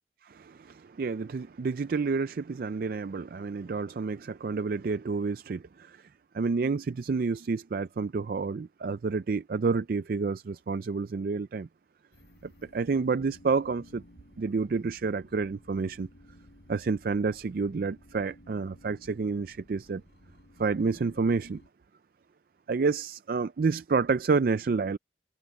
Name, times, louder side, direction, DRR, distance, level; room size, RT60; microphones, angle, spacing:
voice 1, 0.2-6.1 6.3-11.7 12.4-14.0 14.4-16.1 16.7-20.0 20.6-21.6 22.7-25.0, right 4 dB, 55° right, 0.4 m, -29 dB
sound 1, 12.1-21.7, equal, 70° left, 6.8 m, -56 dB
head